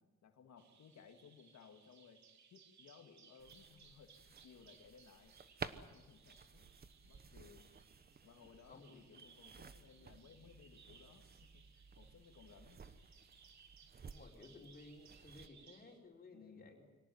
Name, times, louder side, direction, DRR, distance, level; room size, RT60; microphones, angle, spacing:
voice 1, 0.0-2.2 2.5-4.1 4.4-5.3 5.7-6.7 7.0-7.7 8.2-11.3 11.5-12.8 16.3-16.8, left 6 dB, 65° left, 6 dB, 2.3 m, -61 dB
Bird vocalization bird call bird song, 0.6-16.0, right 6 dB, 70° right, 2.8 m, -65 dB
sound 1, 3.4-15.5, right 5 dB, 30° right, 1.0 m, -55 dB
voice 2, 8.7-9.0 14.0-16.8, left 2 dB, 30° left, 0 dB, 4.4 m, -57 dB
24.5 x 17.5 x 9.4 m, 1.1 s
cardioid pair, 130°, 29 cm